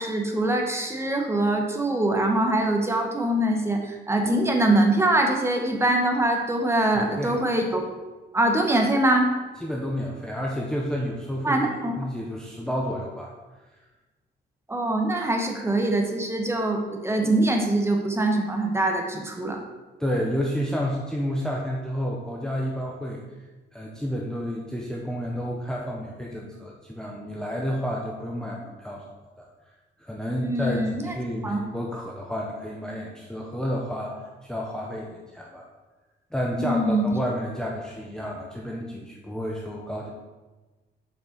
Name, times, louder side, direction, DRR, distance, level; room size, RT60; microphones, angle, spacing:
voice 1, 0.0-7.8 8.3-9.3 11.4-11.9 14.7-19.6 30.4-31.2 31.4-31.6 36.6-37.1, right 1 dB, 15° right, 2 dB, 1.0 m, -23 dB
voice 2, 7.0-7.3 9.6-11.6 12.0-13.3 20.0-23.2 23.7-29.0 30.0-34.2 34.5-35.6 36.3-40.1, equal, 5° left, -2 dB, 0.7 m, -30 dB
6.9 x 5.5 x 3.9 m, 1.2 s
cardioid pair, 120°, 19 cm